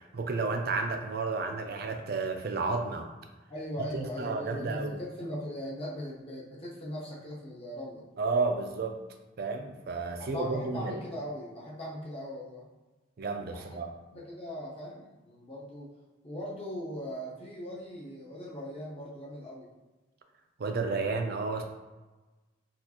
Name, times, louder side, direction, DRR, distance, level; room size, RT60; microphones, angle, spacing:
voice 1, 0.0-3.1 3.9-5.0 8.2-9.0 9.4-11.0 13.2-13.9 20.6-21.6, right 4 dB, 50° right, 4 dB, 0.4 m, -31 dB
voice 2, 3.5-8.1 10.2-12.6 13.5-13.8 14.1-15.9 16.2-19.7, equal, 30° left, -5 dB, 0.8 m, -39 dB
4.2 x 2.4 x 2.8 m, 1.2 s
head